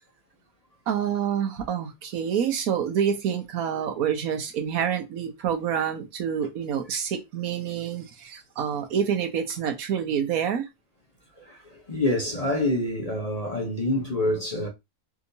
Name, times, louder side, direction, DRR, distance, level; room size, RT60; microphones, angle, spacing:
voice 1, 0.9-10.7, right 8 dB, 75° right, 1.2 m, -27 dB
voice 2, 11.4-14.7, left 1 dB, 35° left, 0.7 m, -27 dB
3.4 x 2.9 x 2.6 m
omnidirectional pair, 1.5 m